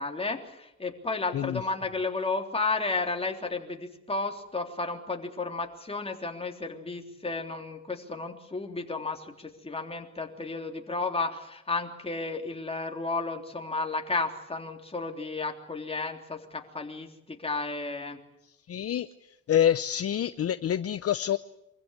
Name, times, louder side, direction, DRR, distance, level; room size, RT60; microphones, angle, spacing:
voice 1, 0.0-18.2, left 3 dB, 20° left, 3 dB, 3.4 m, -33 dB
voice 2, 18.7-19.1 19.5-21.4, left 10 dB, 50° left, 13 dB, 0.8 m, -26 dB
25.0 x 15.5 x 9.6 m, 0.84 s
cardioid pair, 90°, 30 cm